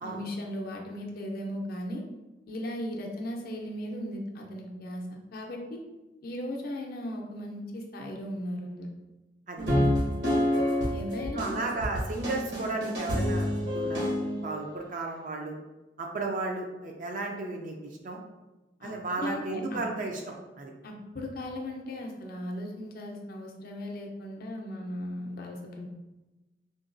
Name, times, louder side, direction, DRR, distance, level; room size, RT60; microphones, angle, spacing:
voice 1, 0.0-2.0 2.5-5.0 5.3-5.8 6.2-8.9 10.9-11.9 18.8-19.8 20.8-25.9, left 1 dB, 55° left, 1 dB, 0.5 m, -37 dB
sound 1, 9.6-14.5, equal, 75° right, 1.1 m, -28 dB
voice 2, 11.3-13.5 13.7-14.1 14.4-15.5 16.0-18.2 18.8-20.7, right 3 dB, 45° right, 1 dB, 0.4 m, -34 dB
3.8 x 2.2 x 2.5 m, 1.1 s
head